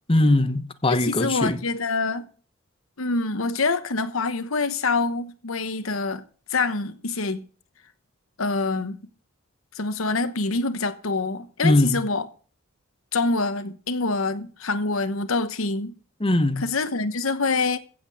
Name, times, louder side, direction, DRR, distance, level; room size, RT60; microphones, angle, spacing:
voice 1, 0.1-1.6 11.6-12.0 16.2-16.6, left 1 dB, 25° left, 1.1 m, -20 dB
voice 2, 0.9-2.3 3.0-6.2 6.5-7.4 8.4-9.0 9.7-12.3 13.1-15.9 16.6-17.8, left 3 dB, 80° left, 1.1 m, -25 dB
15.0 x 5.9 x 7.7 m
head